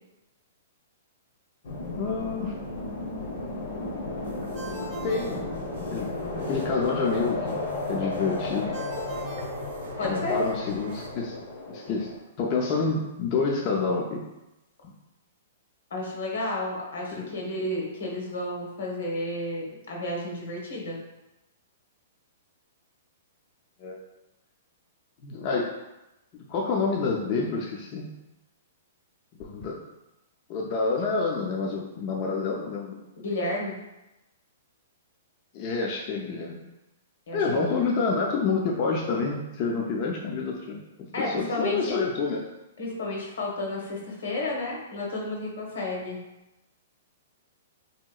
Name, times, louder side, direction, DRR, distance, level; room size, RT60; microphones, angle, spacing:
sound 1, 1.6-12.2, left 2 dB, 60° left, 0.7 m, -34 dB
voice 1, 2.0-2.5 5.0-8.8 10.0-11.4 11.7-12.1 12.4-14.2 14.8-14.9 17.1-17.3 23.8-24.0 25.2-25.7 26.3-28.1 29.4-29.8 30.5-33.0 35.5-36.6 37.3-41.1 41.3-42.4, left 4 dB, 35° left, -2 dB, 0.3 m, -28 dB
sound 2, 4.2-11.1, right 3 dB, 65° right, 0.6 m, -49 dB
Ringtone, 4.5-6.2 8.7-10.4, right 2 dB, 25° right, 0.6 m, -43 dB
voice 2, 10.0-10.4 15.9-21.0 33.2-33.8 37.3-37.8 41.1-42.0 42.8-46.2, left 1 dB, 80° left, -2 dB, 1.0 m, -32 dB
3.4 x 2.8 x 2.3 m, 0.97 s
hypercardioid pair, 155°, 0 cm